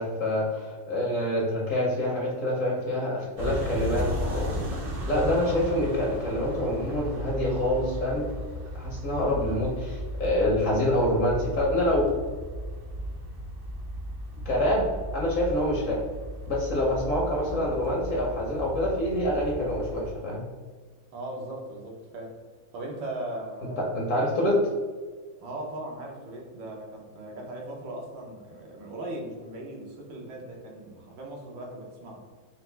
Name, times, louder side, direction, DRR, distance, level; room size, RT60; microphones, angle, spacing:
voice 1, 0.0-4.1 4.3-4.6 5.1-8.2 8.7-12.1 14.4-14.9 15.1-16.0 16.5-20.4 23.9-24.6, left 1 dB, 60° left, -3 dB, 0.9 m, -26 dB
sound 1, 3.4-20.1, equal, 60° right, 0.5 m, -35 dB
voice 2, 21.1-22.4 22.7-23.9 25.4-32.3, right 1 dB, 85° right, -1 dB, 1.6 m, -38 dB
4.2 x 2.5 x 3.3 m, 1.5 s
omnidirectional pair, 2.0 m